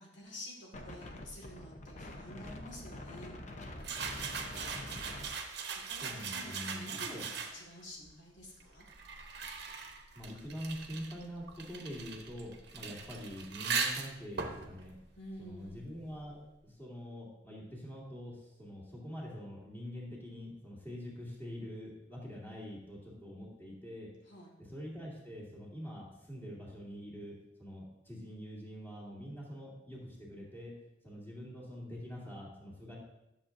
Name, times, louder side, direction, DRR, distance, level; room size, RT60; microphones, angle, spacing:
voice 1, 0.0-3.4 5.7-8.8 15.2-15.8 24.3-24.5, left 1 dB, 80° left, -2 dB, 1.9 m, -50 dB
Wind, 0.7-6.2, left 1 dB, 40° left, 0.7 m, -46 dB
sound 1, 3.8-7.8 8.6-16.0, right 5 dB, 60° right, 0.9 m, -40 dB
voice 2, 6.0-7.2 10.1-15.0 15.4-24.1 24.6-30.8 31.0-33.0, equal, 10° left, -7 dB, 2.4 m, -45 dB
11.0 x 7.1 x 2.6 m, 0.88 s
head